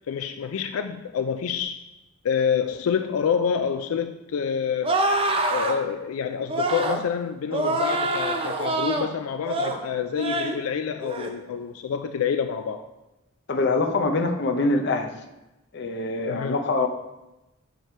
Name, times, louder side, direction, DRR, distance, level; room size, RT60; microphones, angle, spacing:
voice 1, 0.0-1.8 2.2-5.0 5.5-12.9 16.3-16.6, left 7 dB, 90° left, 8 dB, 0.4 m, -27 dB
sound 1, 4.8-5.8 6.5-7.0 7.5-9.1 9.4-9.8 10.2-10.6 11.0-11.3, right 2 dB, 25° right, 0.6 m, -25 dB
voice 2, 13.5-15.1 15.7-16.9, left 3 dB, 55° left, 4 dB, 0.7 m, -24 dB
6.4 x 5.0 x 4.3 m, 0.98 s
head